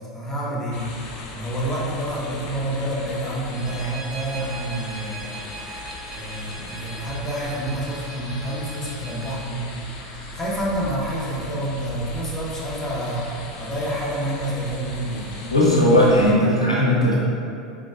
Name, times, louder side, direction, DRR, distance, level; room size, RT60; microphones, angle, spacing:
voice 1, 0.1-0.9 1.3-9.7 10.0-15.4, right 1 dB, 15° left, -6 dB, 1.1 m, -28 dB
sound 1, 0.7-16.3, left 2 dB, 45° left, 0.7 m, -38 dB
Bowed string instrument, 3.4-9.4, right 3 dB, 85° right, 1.2 m, -40 dB
voice 2, 15.4-17.2, left 1 dB, 90° left, -5 dB, 0.8 m, -17 dB
4.5 x 3.8 x 2.4 m, 2.6 s
figure-of-eight pair, 80°, 3 cm